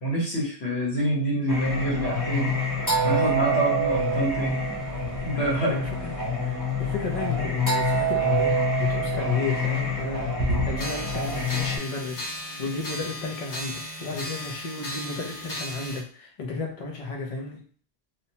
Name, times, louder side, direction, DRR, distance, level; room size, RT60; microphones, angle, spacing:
voice 1, 0.0-4.6 5.2-5.8, right 1 dB, 70° left, -4 dB, 1.4 m, -27 dB
Singing, 1.5-11.8, equal, 20° left, 0.9 m, -26 dB
sound 1, 2.7-3.4 3.6-7.8 9.4-10.0 10.3-11.1, right 2 dB, 70° right, 0.9 m, -36 dB
voice 2, 5.7-6.1 6.4-17.6, left 3 dB, 45° left, 0 dB, 0.5 m, -33 dB
sound 2, 10.8-16.0, left 1 dB, 85° left, 1.2 m, -36 dB
2.8 x 2.1 x 2.8 m, 0.44 s
omnidirectional pair, 1.2 m